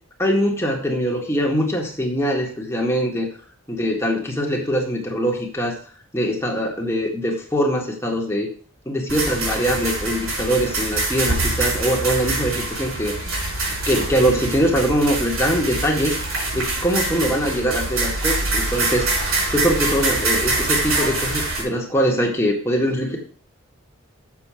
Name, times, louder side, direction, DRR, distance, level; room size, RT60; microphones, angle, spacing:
voice 1, 0.2-3.3 3.7-5.7 6.1-8.5 8.9-13.1 13.9-16.2 16.5-19.1 19.5-23.2, equal, 10° left, -1 dB, 1.9 m, -22 dB
sound 1, 9.1-21.6, right 2 dB, 80° right, 5.5 m, -24 dB
7.6 x 7.2 x 5.1 m, 0.43 s
head